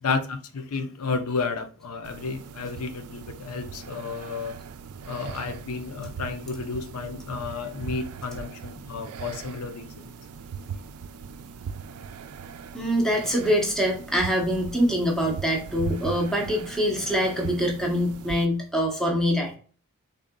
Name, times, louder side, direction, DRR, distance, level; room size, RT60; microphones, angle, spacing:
voice 1, 0.0-4.5 5.1-10.1, left 4 dB, 75° left, 0.5 m, -32 dB
sound 1, 2.0-18.5, right 6 dB, 80° right, 0.4 m, -39 dB
voice 2, 12.7-19.6, equal, ahead, 0.9 m, -24 dB
3.8 x 3.7 x 2.2 m
head